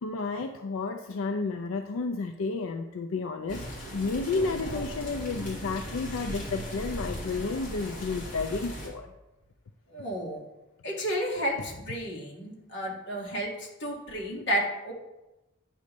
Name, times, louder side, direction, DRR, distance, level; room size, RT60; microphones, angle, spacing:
voice 1, 0.0-3.6 3.9-9.1, left 4 dB, 85° left, 6 dB, 0.4 m, -31 dB
sound 1, 3.5-8.9, equal, 40° left, 2.4 m, -37 dB
voice 2, 9.9-10.4 10.8-14.9, equal, 60° left, -2 dB, 1.9 m, -32 dB
9.4 x 3.1 x 6.7 m, 0.99 s
head